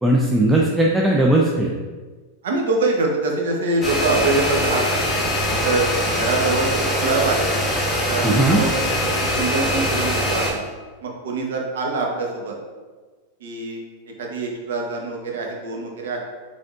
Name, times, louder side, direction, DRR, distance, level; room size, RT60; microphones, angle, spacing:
voice 1, 0.0-1.7 8.2-8.6, right 1 dB, 5° right, -2 dB, 0.4 m, -17 dB
voice 2, 2.4-5.0 5.5-5.9 6.2-7.5 8.1-10.6 11.0-12.5 13.4-13.8 14.2-16.2, right 3 dB, 80° right, 0 dB, 0.9 m, -24 dB
sound 1, 3.8-10.5, equal, 10° left, 1.0 m, -22 dB
5.0 x 3.5 x 2.5 m, 1.4 s
supercardioid pair, 135°, 0 cm